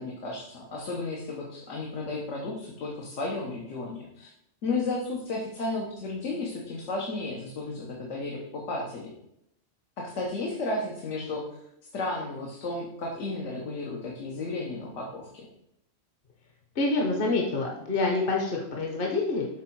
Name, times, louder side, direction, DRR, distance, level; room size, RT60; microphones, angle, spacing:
voice 1, 0.0-4.3 4.6-9.1 10.0-11.4 11.9-15.5, left 2 dB, 80° left, -2 dB, 1.3 m, -33 dB
voice 2, 16.7-19.5, left 3 dB, 50° left, 0 dB, 1.0 m, -27 dB
6.6 x 3.6 x 4.5 m, 0.77 s
omnidirectional pair, 1.2 m